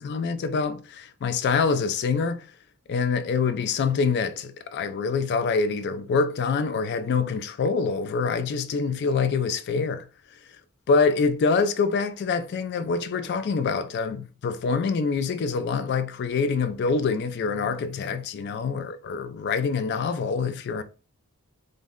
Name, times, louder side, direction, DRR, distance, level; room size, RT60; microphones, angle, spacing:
voice 1, 0.0-2.4 2.9-10.0 10.9-20.8, left 5 dB, 50° left, 0.3 m, -25 dB
2.6 x 2.1 x 3.6 m
head